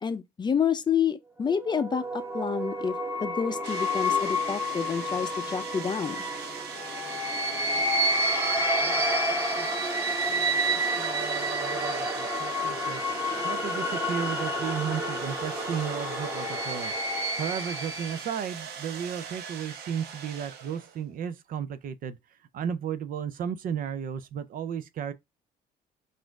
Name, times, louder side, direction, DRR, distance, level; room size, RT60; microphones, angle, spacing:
voice 1, 0.0-6.2, left 7 dB, 25° left, 0.5 m, -29 dB
sound 1, 1.5-18.3, equal, 15° right, 1.1 m, -29 dB
sound 2, 3.6-21.2, right 7 dB, 75° right, 0.9 m, -41 dB
voice 2, 9.3-13.0 13.4-16.9 17.4-22.2 22.5-25.1, right 8 dB, 55° right, 0.5 m, -34 dB
4.1 x 2.6 x 4.5 m
cardioid pair, 110°, 17 cm